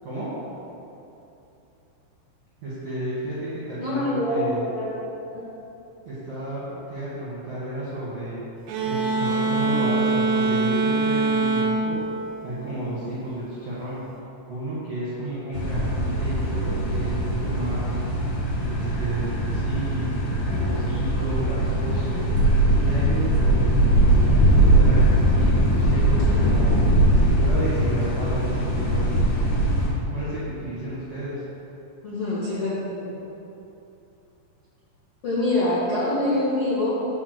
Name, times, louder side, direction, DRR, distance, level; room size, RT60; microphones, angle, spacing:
voice 1, 2.6-4.7 6.0-6.6 6.9-8.4 8.8-12.0 12.4-14.0 14.5-18.0 18.6-20.0 20.5-22.3 22.7-26.7 27.1-29.3 30.1-31.4, right 1 dB, 65° right, -10 dB, 1.5 m, -32 dB
voice 2, 3.8-5.0 5.3-5.4 32.0-33.1 35.2-36.9, left 1 dB, 65° left, -12 dB, 1.4 m, -25 dB
sound 1, 8.7-13.1, right 3 dB, 90° right, 2.5 m, -24 dB
sound 2, 15.5-29.9, right 1 dB, 85° left, 4.1 m, -21 dB
8.7 x 4.0 x 6.6 m, 2.9 s
omnidirectional pair, 5.8 m